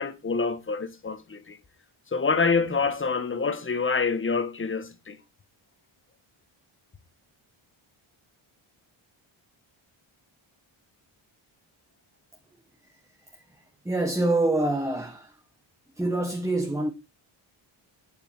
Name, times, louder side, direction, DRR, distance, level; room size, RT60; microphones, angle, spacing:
voice 1, 0.0-1.6 2.1-5.2, left 4 dB, 25° left, 1.3 m, -26 dB
voice 2, 13.8-15.4 16.0-16.9, right 2 dB, 5° right, 1.1 m, -26 dB
9.0 x 7.2 x 4.5 m
wide cardioid pair, 150°, 50 cm